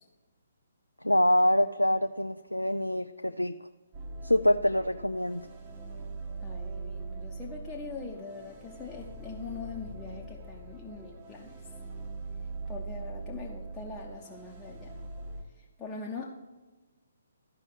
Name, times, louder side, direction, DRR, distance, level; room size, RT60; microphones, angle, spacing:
voice 1, 1.0-3.5 4.2-5.5, equal, 90° left, 9 dB, 0.3 m, -25 dB
sound 1, 3.9-15.4, right 3 dB, 25° right, 1.5 m, -42 dB
voice 2, 6.4-11.6 12.7-15.0 15.6-16.5, left 4 dB, 10° left, -4 dB, 0.9 m, -42 dB
13.5 x 5.4 x 6.1 m, 1.3 s
figure-of-eight pair, 135°, 0 cm